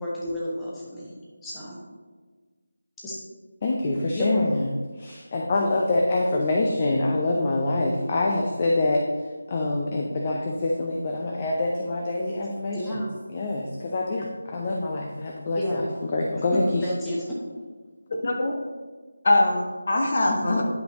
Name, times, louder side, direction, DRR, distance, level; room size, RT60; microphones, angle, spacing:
voice 1, 0.0-1.1 1.4-1.8 3.0-3.1 4.1-4.7 8.0-8.1 12.7-13.1 15.6-15.9 16.8-17.4, left 1 dB, 5° left, -8 dB, 1.2 m, -31 dB
voice 2, 3.6-4.7 5.0-9.1 9.5-13.0 13.3-16.9, left 2 dB, 30° left, 0 dB, 0.6 m, -25 dB
voice 3, 18.1-18.5 19.2-20.6, left 2 dB, 50° left, 2 dB, 1.2 m, -22 dB
10.5 x 5.1 x 3.0 m, 1.4 s
figure-of-eight pair, 165°, 0 cm